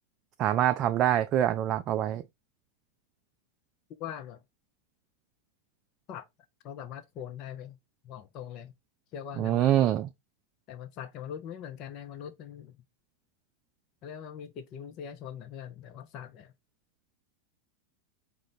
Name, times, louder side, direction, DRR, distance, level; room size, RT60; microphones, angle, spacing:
voice 1, 0.4-2.2 9.4-10.1, right 11 dB, 35° right, 0.3 m, -25 dB
voice 2, 4.0-4.4 6.1-6.3 6.6-7.8 8.0-8.7 9.1-9.7 10.7-12.7 14.0-16.5, left 9 dB, 40° left, 0.5 m, -41 dB
5.0 x 2.1 x 4.0 m
figure-of-eight pair, 90°, 0 cm